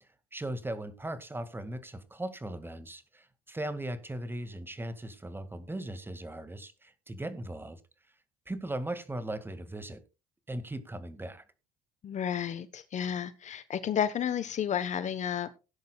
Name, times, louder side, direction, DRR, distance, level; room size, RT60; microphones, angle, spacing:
voice 1, 0.0-7.8 8.5-10.0 10.5-11.4, right 1 dB, 15° right, 2.0 m, -38 dB
voice 2, 12.0-15.6, left 9 dB, 50° left, 1.1 m, -32 dB
17.5 x 10.5 x 2.3 m
supercardioid pair, 80°, 16 cm